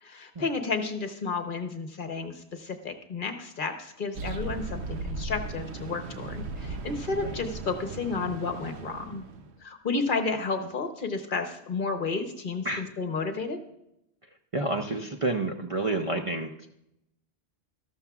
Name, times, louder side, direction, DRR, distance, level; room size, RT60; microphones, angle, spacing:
voice 1, 0.0-9.2 9.6-13.6, left 4 dB, 50° left, 6 dB, 1.0 m, -32 dB
sound 1, 4.1-9.5, right 3 dB, 75° right, 1.0 m, -37 dB
voice 2, 14.5-16.7, right 2 dB, 40° right, 3 dB, 0.6 m, -29 dB
13.0 x 12.5 x 2.4 m, 0.81 s
omnidirectional pair, 1.1 m